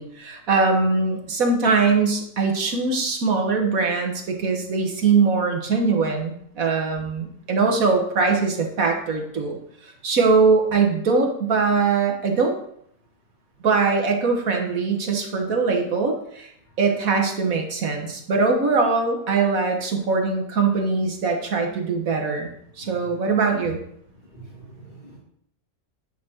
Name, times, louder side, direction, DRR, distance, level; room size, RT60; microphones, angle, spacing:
voice 1, 0.0-12.6 13.6-16.5 16.8-22.5 22.8-23.8, right 4 dB, 65° right, 2 dB, 1.8 m, -22 dB
voice 2, 22.8-23.2 24.3-25.2, right 2 dB, 30° left, -7 dB, 2.2 m, -45 dB
10.0 x 4.1 x 6.3 m, 0.69 s
omnidirectional pair, 1.6 m